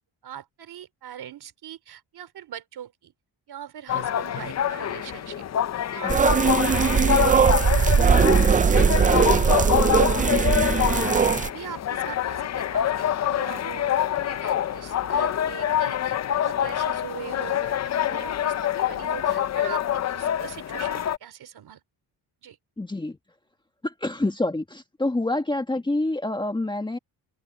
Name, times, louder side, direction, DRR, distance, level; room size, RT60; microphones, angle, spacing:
voice 1, 0.2-3.1 3.5-5.5 5.9-8.3 8.6-10.9 11.4-21.8 22.4-22.6, right 10 dB, 60° right, 3.7 m, -41 dB
sound 1, 3.9-21.2, left 10 dB, 40° left, 0.6 m, -26 dB
sound 2, 6.1-11.5, right 6 dB, 20° right, 0.3 m, -19 dB
voice 2, 22.8-23.2 23.8-27.0, left 2 dB, 10° left, 1.7 m, -27 dB
cardioid pair, 155°, 43 cm